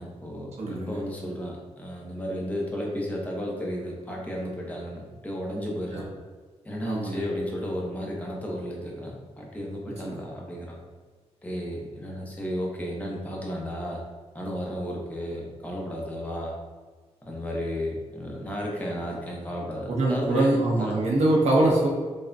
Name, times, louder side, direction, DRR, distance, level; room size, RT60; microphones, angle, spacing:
voice 1, 0.0-6.1 6.6-10.8 11.4-14.0 14.3-16.5 17.2-21.0, equal, 15° left, -2 dB, 0.7 m, -33 dB
voice 2, 0.6-0.9 5.9-6.0 6.8-7.2 10.0-10.2 19.9-21.9, right 2 dB, 75° right, -4 dB, 0.8 m, -23 dB
5.1 x 2.1 x 2.6 m, 1.4 s
wide cardioid pair, 145°, 11 cm